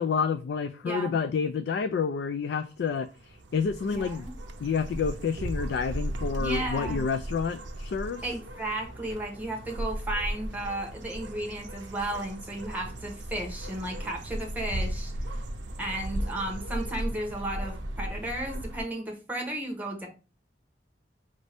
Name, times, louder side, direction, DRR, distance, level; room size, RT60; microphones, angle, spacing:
voice 1, 0.0-3.1 3.5-4.3 4.6-8.2, left 5 dB, 65° left, 0.3 m, -29 dB
voice 2, 0.8-1.1 3.9-4.3 6.4-7.1 8.2-15.1 15.8-20.1, right 1 dB, 10° right, 0.9 m, -34 dB
sound 1, 2.7-18.8, right 1 dB, 90° right, 0.6 m, -36 dB
5.2 x 2.6 x 3.3 m
head